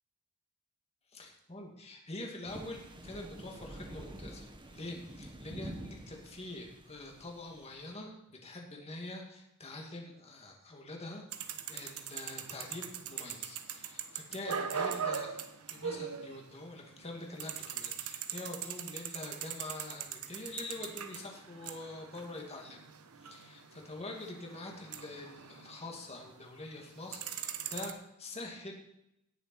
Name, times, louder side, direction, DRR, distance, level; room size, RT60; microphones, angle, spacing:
voice 1, 1.1-11.2 11.7-22.9 23.2-28.7, left 2 dB, 30° left, 1 dB, 2.3 m, -45 dB
sound 1, 2.5-7.9, right 1 dB, 20° right, 1.0 m, -48 dB
sound 2, 11.3-16.8 17.0-26.4 26.8-27.9, right 7 dB, 85° right, 1.0 m, -41 dB
17.5 x 6.9 x 4.5 m, 0.83 s
head